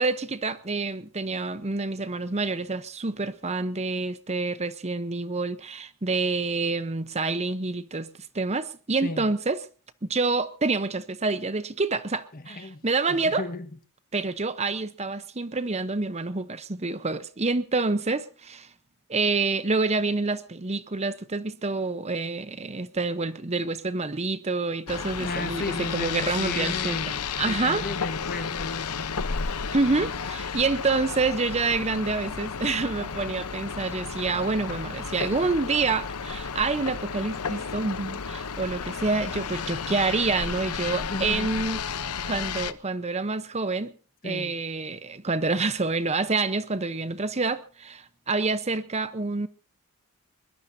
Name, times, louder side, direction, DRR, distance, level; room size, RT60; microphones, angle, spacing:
voice 1, 0.0-8.1 8.3-9.6 10.0-13.5 14.1-18.7 19.1-27.9 29.7-41.8 42.3-43.9 44.2-49.5, right 3 dB, 30° right, 0.8 m, -27 dB
voice 2, 12.3-13.7 25.2-29.0 40.9-41.5 44.2-44.5, left 2 dB, 40° left, 1.5 m, -35 dB
sound 1, 24.9-42.7, left 6 dB, 90° left, 0.9 m, -32 dB
22.0 x 21.0 x 2.8 m
head